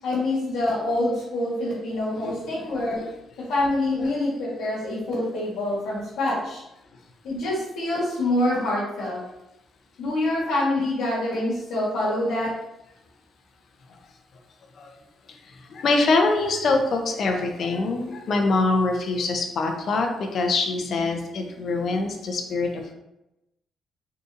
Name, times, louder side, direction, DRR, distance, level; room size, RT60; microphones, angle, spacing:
voice 1, 0.0-3.0 3.4-6.6 7.2-9.2 10.0-12.5, left 1 dB, 90° left, -9 dB, 1.2 m, -26 dB
voice 2, 2.1-3.1 14.8-15.0 15.4-22.9, left 3 dB, 60° left, 3 dB, 0.5 m, -24 dB
3.7 x 2.7 x 2.5 m, 0.89 s
cardioid pair, 90°, 0 cm